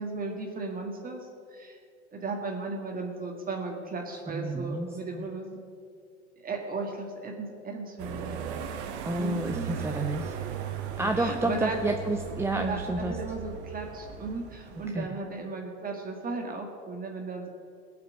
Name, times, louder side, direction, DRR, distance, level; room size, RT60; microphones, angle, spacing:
voice 1, 0.0-1.8 2.1-5.6 6.4-8.4 9.1-9.8 11.0-11.8 12.5-17.5, right 3 dB, 25° right, 1 dB, 1.9 m, -36 dB
voice 2, 4.3-4.9 5.1-5.3 9.0-10.4 11.0-13.2 14.9-15.2, right 2 dB, 5° right, 4 dB, 0.6 m, -30 dB
sound 1, 8.0-14.9, right 7 dB, 70° right, 1.5 m, -37 dB
17.5 x 6.0 x 8.0 m, 2.3 s
hypercardioid pair, 105°, 34 cm